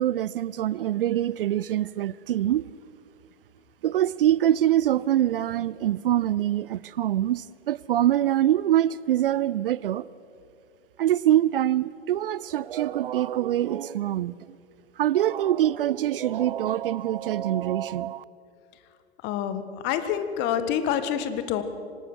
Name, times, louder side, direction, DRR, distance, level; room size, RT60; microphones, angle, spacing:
voice 1, 0.0-2.6 3.8-10.1 11.0-14.3 15.0-18.2, right 12 dB, 55° right, 21 dB, 0.5 m, -24 dB
voice 2, 19.2-21.6, left 9 dB, 30° left, 10 dB, 1.6 m, -27 dB
25.5 x 18.5 x 6.4 m, 2.4 s
figure-of-eight pair, 105°, 33 cm